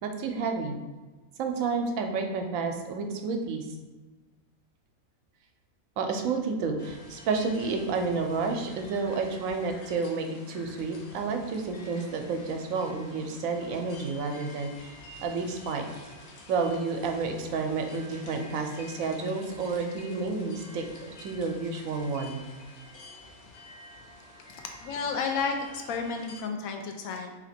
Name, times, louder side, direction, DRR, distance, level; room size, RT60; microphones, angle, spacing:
voice 1, 0.0-0.7 1.4-3.6 6.0-14.9 15.2-15.8 16.5-22.4, right 4 dB, 75° right, 4 dB, 1.0 m, -30 dB
sound 1, 6.8-26.4, left 2 dB, 60° left, 0.8 m, -49 dB
voice 2, 24.8-27.3, left 5 dB, 85° left, 3 dB, 1.0 m, -31 dB
3.0 x 2.9 x 4.2 m, 1.3 s
omnidirectional pair, 1.4 m